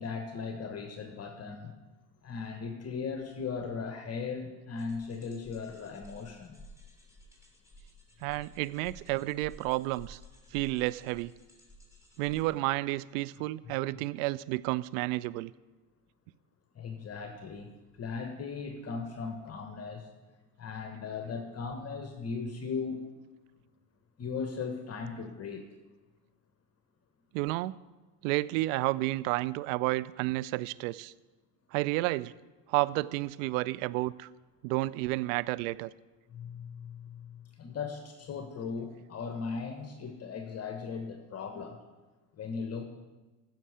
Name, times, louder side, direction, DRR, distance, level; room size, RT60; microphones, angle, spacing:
voice 1, 0.0-1.7 2.2-6.6 16.7-17.7 17.9-20.1 20.6-23.0 24.2-25.7 36.3-41.8 42.3-42.8, left 5 dB, 30° left, 5 dB, 1.2 m, -38 dB
sound 1, 4.8-12.4, equal, 5° right, 3.0 m, -53 dB
voice 2, 8.2-10.2 10.5-11.3 12.2-15.5 27.3-27.8 28.2-31.1 31.7-32.3 32.7-34.3 34.6-35.9, right 19 dB, 55° right, 18 dB, 0.5 m, -31 dB
15.0 x 6.6 x 4.9 m, 1.2 s
figure-of-eight pair, 65°, 49 cm